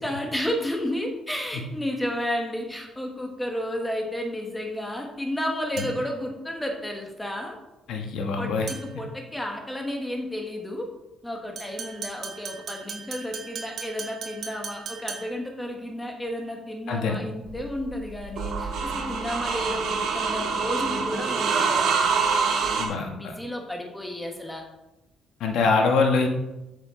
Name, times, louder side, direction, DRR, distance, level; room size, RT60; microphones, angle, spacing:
voice 1, 0.0-7.6 8.4-10.8 11.2-24.6, left 1 dB, 5° left, 2 dB, 1.2 m, -32 dB
sound 1, 5.8-6.2 8.7-9.1 11.6-15.5, right 6 dB, 50° right, 1.2 m, -38 dB
voice 2, 7.9-8.7 16.9-17.2 22.8-23.3 25.4-26.3, left 4 dB, 70° left, 3 dB, 1.2 m, -24 dB
sound 2, 17.5-22.9, right 5 dB, 75° right, 1.4 m, -25 dB
7.4 x 7.3 x 3.7 m, 0.96 s
cardioid pair, 160°, 0 cm